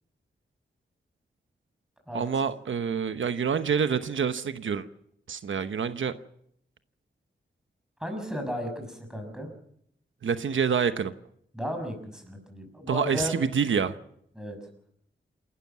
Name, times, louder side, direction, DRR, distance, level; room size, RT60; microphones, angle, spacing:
voice 1, 2.1-4.9 5.3-6.2 10.2-11.1 12.9-13.9, right 6 dB, 85° right, 10 dB, 1.0 m, -27 dB
voice 2, 8.0-9.5 11.5-13.3 14.4-14.6, equal, 5° right, 4 dB, 6.3 m, -34 dB
28.0 x 13.0 x 7.4 m, 0.70 s
wide cardioid pair, 135°, 20 cm